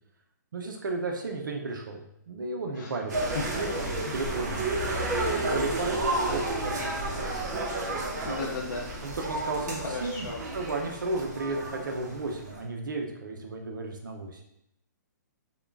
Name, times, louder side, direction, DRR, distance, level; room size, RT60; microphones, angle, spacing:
voice 1, 0.5-5.0 5.4-7.2 9.0-14.4, right 2 dB, 85° right, 2 dB, 0.6 m, -34 dB
sound 1, 3.1-12.5, right 2 dB, 60° right, 1.0 m, -31 dB
voice 2, 8.2-8.9 9.7-10.4, left 3 dB, 65° left, -4 dB, 0.7 m, -35 dB
3.7 x 2.3 x 3.4 m, 0.78 s
hypercardioid pair, 155°, 10 cm